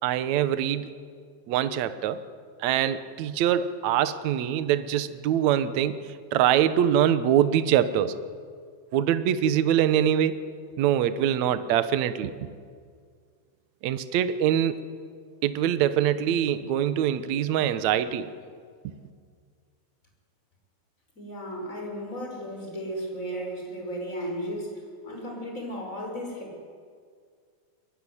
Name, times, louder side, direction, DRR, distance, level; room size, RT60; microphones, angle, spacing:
voice 1, 0.0-0.9 1.5-2.2 2.6-6.0 6.3-8.1 8.9-10.4 10.8-12.5 13.8-14.8 15.4-18.3, right 10 dB, 65° right, 12 dB, 1.9 m, -24 dB
voice 2, 21.2-26.6, equal, 20° left, 0 dB, 6.1 m, -35 dB
23.5 x 23.0 x 9.8 m, 2.1 s
omnidirectional pair, 4.4 m